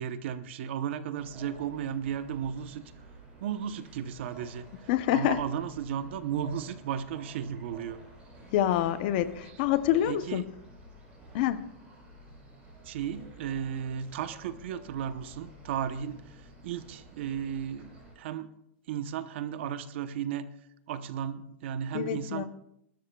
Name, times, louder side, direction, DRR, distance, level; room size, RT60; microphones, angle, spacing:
voice 1, 0.0-2.8 3.4-8.0 9.4-9.6 10.1-10.5 12.8-18.5 18.9-20.5 20.9-22.5, right 9 dB, 60° right, 11 dB, 0.9 m, -35 dB
sound 1, 1.1-18.1, right 1 dB, 15° right, 7.1 m, -51 dB
voice 2, 4.9-5.4 8.5-10.4 11.3-11.6 21.9-22.5, left 12 dB, 45° left, 13 dB, 0.7 m, -26 dB
27.5 x 13.0 x 2.3 m, 0.77 s
supercardioid pair, 165°, 7 cm